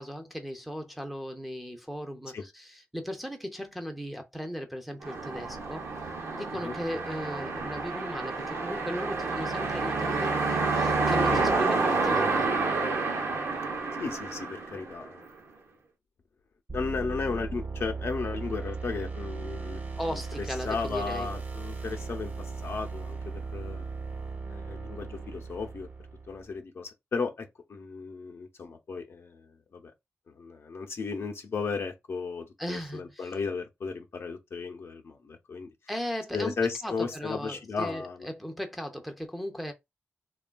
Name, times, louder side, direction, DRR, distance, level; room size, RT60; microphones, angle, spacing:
voice 1, 0.0-5.9 6.3-12.5 20.0-21.3 32.6-33.3 35.9-36.5 36.8-39.7, equal, ahead, 0.5 m, -37 dB
sound 1, 5.0-15.3, right 3 dB, 70° right, 0.7 m, -29 dB
voice 2, 14.0-15.3 16.7-19.8 20.0-20.2 20.6-23.9 24.5-25.9 26.3-29.9 30.3-35.7 36.3-38.3, left 4 dB, 65° left, 0.6 m, -35 dB
sound 2, 16.7-26.5, right 4 dB, 35° right, 0.7 m, -37 dB
3.3 x 2.3 x 2.2 m
wide cardioid pair, 110°, 5 cm